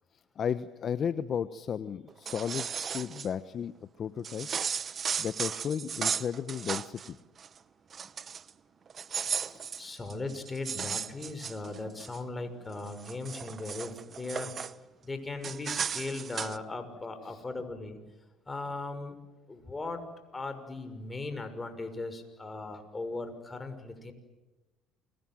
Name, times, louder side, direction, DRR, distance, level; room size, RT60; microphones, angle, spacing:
voice 1, 0.4-4.5 4.8-7.2 9.4-9.7 17.3-17.4, left 8 dB, 45° left, 13 dB, 1.1 m, -34 dB
sound 1, 2.1-3.3 4.2-7.1 7.4-7.6 7.9-8.5 8.9-12.2 12.7-14.7 15.4-16.6, right 7 dB, 40° right, 1.0 m, -35 dB
voice 2, 9.7-14.5 15.0-18.0 18.5-19.2 19.5-20.0 20.3-24.1, left 3 dB, 20° left, 8 dB, 6.2 m, -38 dB
29.0 x 24.5 x 7.7 m, 1.1 s
supercardioid pair, 75°, 0 cm